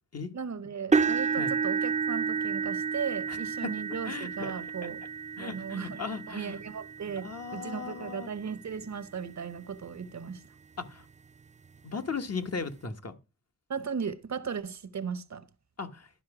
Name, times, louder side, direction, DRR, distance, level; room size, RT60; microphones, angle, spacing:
voice 1, 0.3-5.0 5.4-6.0 6.3-10.4 13.7-15.5, right 6 dB, 70° right, 0.8 m, -36 dB
sound 1, 0.9-8.9 9.6-9.8 10.3-10.4 11.7-11.8, right 5 dB, 25° right, 0.4 m, -31 dB
voice 2, 4.0-4.5 4.8-4.9 5.4-6.6 7.2-8.3 10.8-11.0 11.8-13.2 15.8-16.1, left 5 dB, 60° left, 1.2 m, -37 dB
12.0 x 5.2 x 4.8 m
wide cardioid pair, 80°, 29 cm